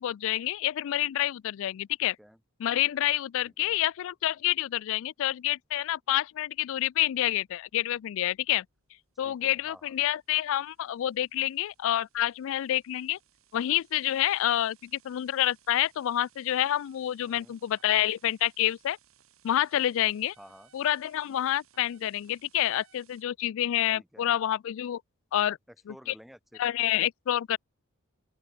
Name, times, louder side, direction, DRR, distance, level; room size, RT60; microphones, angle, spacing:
voice 1, 0.0-2.2 2.6-8.6 9.2-13.2 13.5-19.0 19.4-20.3 20.7-25.0 25.3-25.6 26.6-27.6, left 13 dB, 65° left, 0.3 m, -28 dB
voice 2, 2.0-2.4 3.4-3.8 9.2-9.9 17.2-17.6 20.4-20.7 23.9-24.4 25.7-26.8, equal, ahead, 4.2 m, -53 dB
Bluetooth Mouse, 6.4-23.2, right 9 dB, 75° right, 7.8 m, -65 dB
open air
head